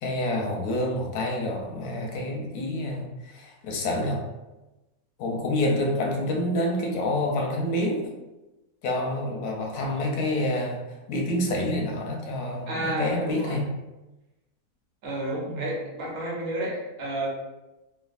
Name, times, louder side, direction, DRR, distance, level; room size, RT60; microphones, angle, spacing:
voice 1, 0.0-4.2 5.2-8.0 8.8-13.7 15.5-15.7, left 1 dB, 85° left, 0 dB, 1.1 m, -28 dB
voice 2, 12.7-13.6 15.0-17.3, right 1 dB, 55° right, -3 dB, 1.0 m, -31 dB
3.2 x 2.2 x 2.4 m, 1.1 s
omnidirectional pair, 1.6 m